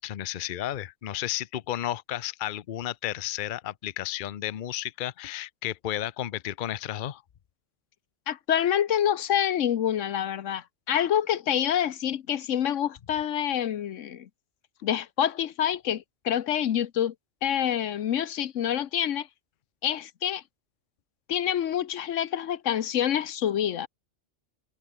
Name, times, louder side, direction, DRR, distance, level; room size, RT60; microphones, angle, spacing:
voice 1, 0.0-7.2, left 12 dB, 50° left, 0.7 m, -33 dB
voice 2, 8.3-14.3 14.8-17.1 17.4-19.3 19.8-20.4 21.3-23.9, left 10 dB, 75° left, 1.1 m, -27 dB
omnidirectional pair, 1.3 m